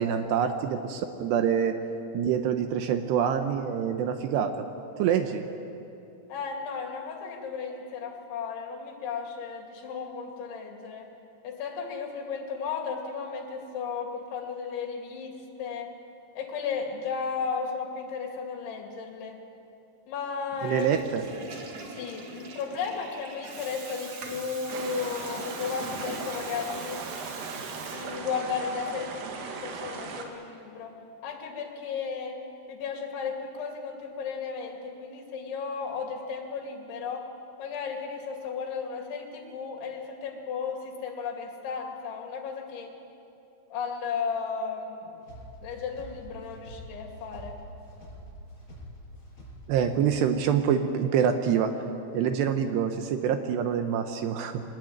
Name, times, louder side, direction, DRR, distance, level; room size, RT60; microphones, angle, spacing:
voice 1, 0.0-1.7 2.1-4.6 5.0-5.4 20.6-21.2 49.7-51.7 52.1-54.6, right 8 dB, 75° right, 7 dB, 2.8 m, -26 dB
voice 2, 6.3-11.1 11.4-15.9 16.4-19.4 20.1-20.9 21.9-27.0 27.9-30.9 31.2-32.4 32.7-37.2 37.6-42.9 43.7-45.1 45.6-47.6, left 5 dB, 75° left, 2 dB, 4.8 m, -34 dB
Water tap faucet / Toilet flush, 20.5-28.5, right 3 dB, 45° right, 2.7 m, -42 dB
sound 1, 24.7-30.2, right 4 dB, 90° right, 4.5 m, -38 dB
sound 2, 45.2-50.3, equal, 15° left, 6.2 m, -46 dB
22.5 x 19.5 x 9.1 m, 2.8 s
omnidirectional pair, 5.5 m